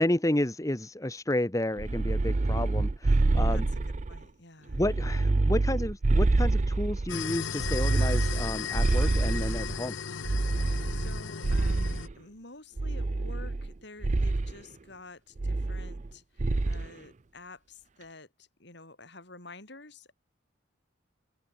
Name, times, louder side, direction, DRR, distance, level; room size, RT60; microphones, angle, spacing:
voice 1, 0.0-3.7 4.7-9.9, left 1 dB, 15° left, 1.1 m, -31 dB
sound 1, 1.8-4.2 4.7-7.1 7.6-9.8 10.2-12.1 12.8-13.7 14.0-14.5 15.4-16.1 16.4-16.9, right 2 dB, 40° right, 0.6 m, -27 dB
voice 2, 3.5-4.8 10.6-20.1, left 2 dB, 60° left, 5.7 m, -50 dB
sound 2, 7.1-12.1, left 6 dB, 80° left, 0.8 m, -36 dB
open air
head